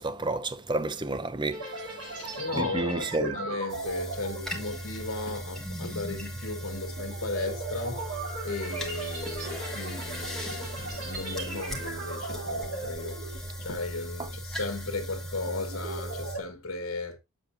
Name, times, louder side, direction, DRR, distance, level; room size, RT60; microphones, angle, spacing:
voice 1, 0.0-3.4, right 2 dB, 20° right, 0.5 m, -31 dB
sound 1, 1.5-14.0 14.3-14.6 15.1-16.4, right 3 dB, 85° right, 3.2 m, -38 dB
voice 2, 2.0-17.2, left 3 dB, 70° left, 1.6 m, -36 dB
sound 2, 3.7-16.3, equal, ahead, 1.6 m, -38 dB
7.4 x 7.2 x 2.7 m
head